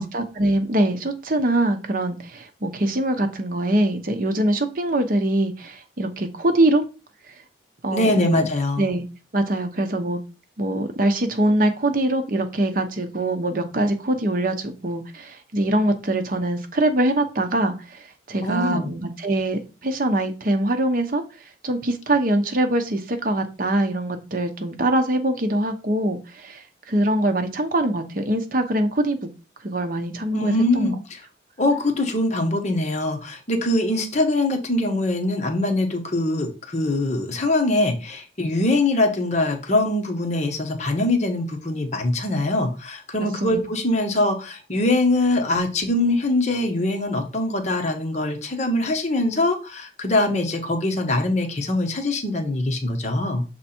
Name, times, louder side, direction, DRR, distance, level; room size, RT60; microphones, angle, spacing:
voice 1, 0.0-6.8 7.3-7.4 7.8-8.5 8.8-9.0 9.3-10.2 10.6-21.2 21.6-29.2 29.6-30.9 43.4-43.6, right 1 dB, 50° right, 0.8 m, -23 dB
voice 2, 7.9-8.9 18.4-18.9 30.3-31.2 31.6-53.4, left 2 dB, 40° left, 1.1 m, -23 dB
6.6 x 3.4 x 4.3 m
head